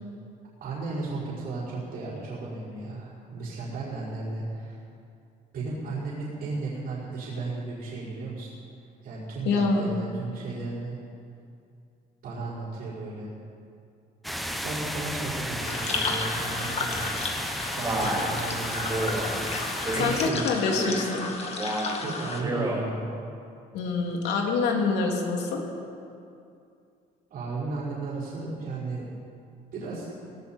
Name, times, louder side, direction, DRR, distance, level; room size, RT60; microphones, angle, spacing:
voice 1, 0.6-4.8 5.5-8.5 9.0-11.0 12.2-13.3 14.6-17.0 17.8-19.6 19.9-20.6 21.7-23.1 27.3-29.1 29.7-30.2, right 3 dB, 65° right, -9 dB, 5.1 m, -34 dB
voice 2, 9.4-10.0 19.9-21.4 23.7-25.6, left 4 dB, 90° left, 0 dB, 2.9 m, -26 dB
sound 1, 14.2-20.3, equal, ahead, 1.2 m, -33 dB
sound 2, 15.6-22.4, left 3 dB, 40° left, 2.2 m, -33 dB
Male speech man speaking, 17.8-18.3 18.9-19.3 19.9-20.2 20.7-21.1 21.5-21.9 22.3-22.8, right 1 dB, 20° right, 4.6 m, -30 dB
17.5 x 17.5 x 4.5 m, 2.5 s
cardioid pair, 110°, 17 cm